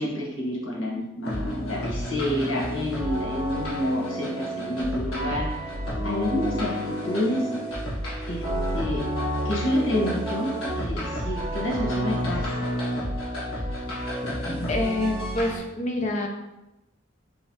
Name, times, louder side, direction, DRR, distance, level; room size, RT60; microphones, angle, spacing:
voice 1, 0.0-5.5 6.0-7.5 8.3-8.4 8.7-9.1 9.4-12.7 14.4-14.6, left 1 dB, 65° left, -3 dB, 1.1 m, -28 dB
sound 1, 1.2-15.6, equal, 85° left, 1.5 m, -30 dB
voice 2, 14.7-16.3, left 2 dB, 35° left, 3 dB, 0.5 m, -27 dB
4.2 x 3.9 x 2.8 m, 0.94 s
head